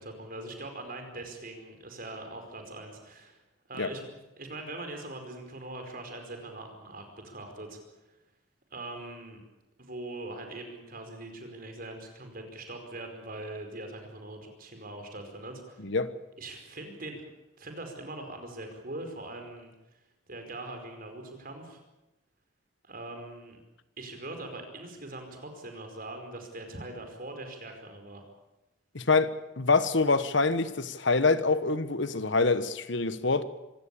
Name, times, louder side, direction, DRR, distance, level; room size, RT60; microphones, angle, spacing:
voice 1, 0.0-3.4 3.7-4.1 4.4-7.8 8.7-9.4 9.8-15.8 16.4-17.2 17.6-19.7 20.3-21.8 22.8-23.6 24.0-28.3, right 2 dB, 45° right, 5.0 m, -42 dB
voice 2, 28.9-33.4, left 3 dB, 60° left, 1.3 m, -25 dB
25.5 x 16.5 x 8.6 m
head